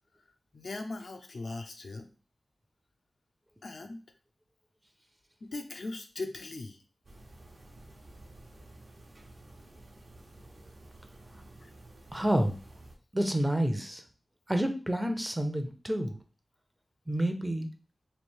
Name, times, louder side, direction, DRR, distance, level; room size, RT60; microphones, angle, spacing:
voice 1, 0.2-2.1 3.6-4.0 5.4-6.8 11.6-11.7, left 2 dB, 70° left, 5 dB, 0.5 m, -40 dB
sound 1, 7.0-13.0, right 2 dB, 55° right, 0.9 m, -52 dB
voice 2, 12.1-12.6 13.1-14.0 14.5-16.2 17.1-17.7, right 1 dB, 15° right, 6 dB, 0.6 m, -29 dB
3.2 x 2.7 x 4.4 m, 0.36 s
wide cardioid pair, 65°, 0 cm